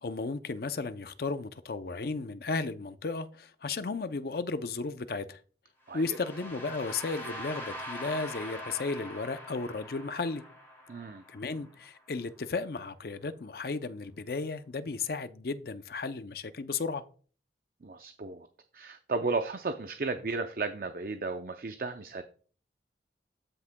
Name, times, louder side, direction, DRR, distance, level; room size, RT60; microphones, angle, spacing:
voice 1, 0.0-5.4 5.9-10.4 11.3-17.0, left 4 dB, 55° left, 0.5 m, -34 dB
sound 1, 5.9-11.8, equal, 15° left, 3.1 m, -43 dB
voice 2, 10.9-11.2 17.8-18.5 18.7-22.2, right 3 dB, 50° right, 0.5 m, -34 dB
13.5 x 6.0 x 2.2 m
head